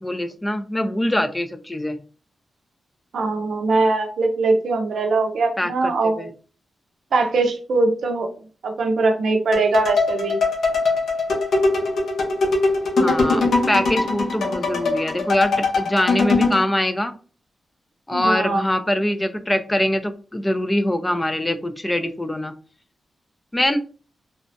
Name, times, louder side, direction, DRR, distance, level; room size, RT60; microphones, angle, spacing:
voice 1, 0.0-2.0 5.6-6.3 13.0-17.1 18.1-22.5 23.5-23.8, left 1 dB, 15° left, 8 dB, 0.4 m, -23 dB
voice 2, 3.1-6.3 7.1-8.3 8.6-10.4 13.3-13.6 18.1-18.6, right 3 dB, 80° right, 5 dB, 0.5 m, -21 dB
sound 1, 9.5-16.6, left 3 dB, 80° left, 0.7 m, -21 dB
3.4 x 2.0 x 2.6 m, 0.38 s
cardioid pair, 80°, 0 cm